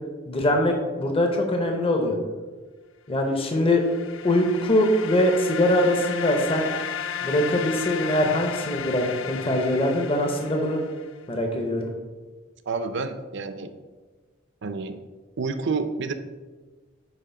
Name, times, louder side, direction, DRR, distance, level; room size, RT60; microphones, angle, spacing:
voice 1, 0.3-2.2 3.1-3.8 4.2-6.7 7.2-10.8 11.3-11.9, left 1 dB, 30° left, 2 dB, 0.8 m, -22 dB
sound 1, 3.4-11.2, left 8 dB, 65° left, 0.4 m, -34 dB
voice 2, 12.7-13.7 14.6-15.0 15.4-16.1, right 4 dB, 60° right, 9 dB, 0.6 m, -29 dB
8.6 x 3.0 x 5.8 m, 1.3 s
head